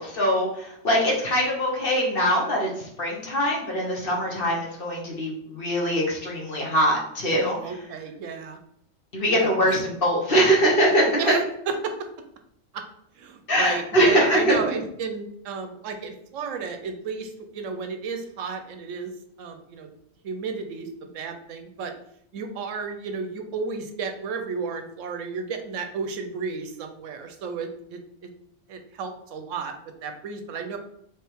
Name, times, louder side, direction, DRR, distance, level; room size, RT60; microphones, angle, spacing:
voice 1, 0.0-7.6 9.1-11.1 13.5-14.6, equal, 45° left, -1 dB, 1.2 m, -22 dB
voice 2, 7.3-8.6 9.3-9.5 11.2-12.1 12.7-12.8 13.1-19.1 19.4-19.9 20.2-21.9 22.3-28.3 28.7-29.7 30.0-30.8, right 5 dB, 75° right, 6 dB, 0.9 m, -32 dB
3.5 x 3.3 x 4.4 m, 0.73 s
omnidirectional pair, 1.4 m